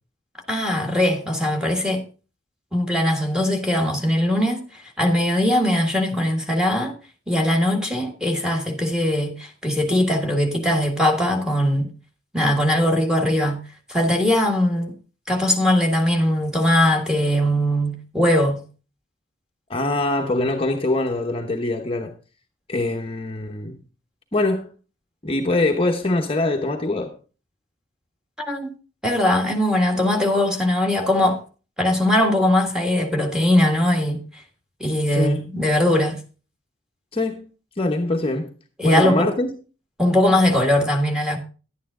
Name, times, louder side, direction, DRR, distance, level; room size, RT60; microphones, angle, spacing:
voice 1, 0.5-2.1 2.7-4.7 5.0-6.9 7.3-11.9 12.3-13.6 13.9-14.9 15.3-18.6 28.4-28.7 29.0-31.4 31.8-34.2 34.8-36.2 38.8-39.3 40.0-41.4, left 1 dB, 5° right, 1.6 m, -20 dB
voice 2, 19.7-22.1 22.7-23.8 24.3-24.7 25.2-27.1 35.1-35.4 37.1-37.5 37.8-38.5 38.8-39.5, left 2 dB, 30° left, 0.9 m, -23 dB
11.0 x 9.3 x 3.7 m
head